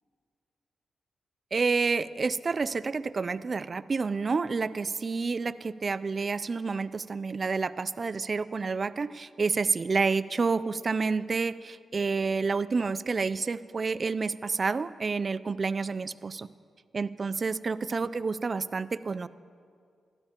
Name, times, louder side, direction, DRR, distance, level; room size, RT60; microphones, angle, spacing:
voice 1, 1.5-16.5 16.9-19.3, right 4 dB, 50° right, 15 dB, 0.3 m, -29 dB
13.5 x 12.5 x 2.9 m, 2.2 s
supercardioid pair, 50°, 0 cm